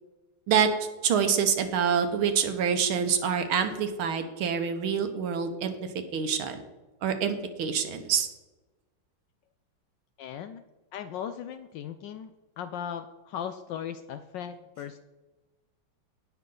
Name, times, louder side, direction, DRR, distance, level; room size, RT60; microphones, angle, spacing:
voice 1, 1.0-5.7 6.1-6.6 7.0-8.3, right 7 dB, 75° right, 7 dB, 1.8 m, -26 dB
voice 2, 10.2-10.6 10.9-12.3 12.6-15.0, left 8 dB, 75° left, 10 dB, 1.1 m, -37 dB
17.0 x 5.8 x 3.9 m, 1.1 s
omnidirectional pair, 2.3 m